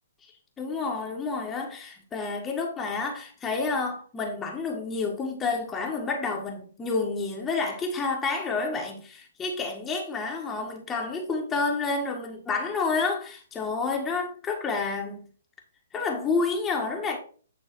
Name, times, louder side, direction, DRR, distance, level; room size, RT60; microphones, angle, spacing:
voice 1, 0.6-15.2 15.9-17.2, left 4 dB, 15° left, 1.6 m, -29 dB
9.0 x 3.9 x 4.7 m
figure-of-eight pair, 125°, 0 cm